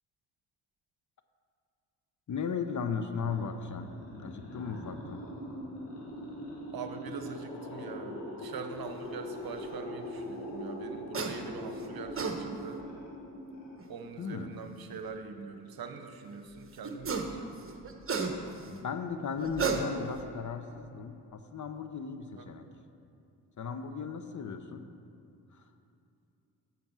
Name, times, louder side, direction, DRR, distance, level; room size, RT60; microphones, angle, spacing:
voice 1, 2.3-3.9 4.2-5.2 14.2-14.5 18.7-22.6 23.6-24.9 25.5-25.7, left 6 dB, 45° left, 8 dB, 0.8 m, -36 dB
sound 1, 3.0-14.2, equal, 80° left, 2.0 m, -42 dB
voice 2, 6.7-12.8 13.9-17.5 22.3-22.5, right 5 dB, 55° right, 7 dB, 1.0 m, -43 dB
sound 2, 11.1-11.4 11.9-12.4 13.8-13.9 16.8-17.3 17.7-18.7 19.4-20.2, right 5 dB, 30° right, 1.1 m, -32 dB
8.7 x 6.1 x 6.1 m, 2.6 s
supercardioid pair, 50°, 42 cm